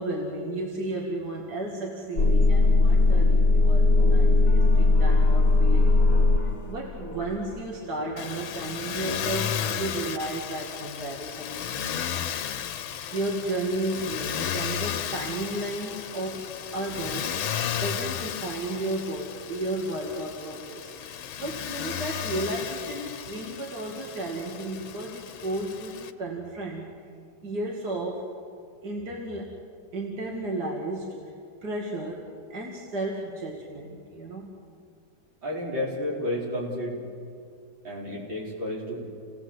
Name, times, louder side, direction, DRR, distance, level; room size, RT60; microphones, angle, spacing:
voice 1, 0.0-6.0 6.4-12.3 12.8-16.4 16.7-17.4 17.7-20.9 21.4-26.9 27.4-28.3 28.8-29.5 29.9-31.2 31.6-34.5, right 2 dB, 55° right, -1 dB, 2.9 m, -33 dB
sound 1, 2.2-10.0, left 3 dB, 60° left, 2.9 m, -21 dB
Motor vehicle (road), 8.2-26.1, left 9 dB, 90° left, 1.7 m, -34 dB
voice 2, 35.4-36.9 37.8-39.1, left 1 dB, 75° right, -4 dB, 5.7 m, -31 dB
29.5 x 18.0 x 8.0 m, 2.2 s
omnidirectional pair, 2.1 m